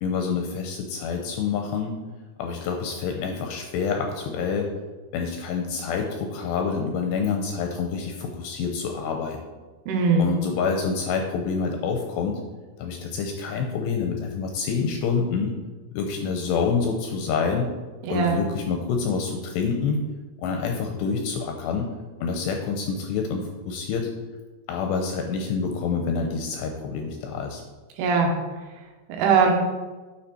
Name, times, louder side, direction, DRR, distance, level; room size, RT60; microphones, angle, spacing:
voice 1, 0.0-1.9 2.4-4.7 5.1-9.4 10.2-12.4 12.8-15.5 15.9-17.7 18.1-20.0 20.4-21.9 22.2-24.1 24.7-27.6, left 5 dB, 75° left, 3 dB, 2.7 m, -27 dB
voice 2, 9.9-10.3 18.1-18.4 28.0-28.3 29.1-29.5, right 4 dB, 90° right, 2 dB, 4.0 m, -20 dB
9.9 x 7.2 x 4.4 m, 1.3 s
omnidirectional pair, 5.4 m